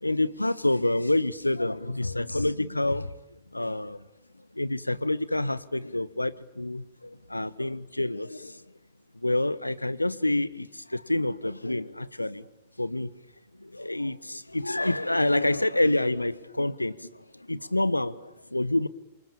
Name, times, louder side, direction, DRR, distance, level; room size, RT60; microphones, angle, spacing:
voice 1, 0.0-3.2 3.5-4.1 4.5-8.6 9.1-12.5 12.8-13.1 13.6-18.9, left 1 dB, 90° left, 1.1 m, -28 dB
27.5 x 25.0 x 8.7 m
figure-of-eight pair, 100°, 0 cm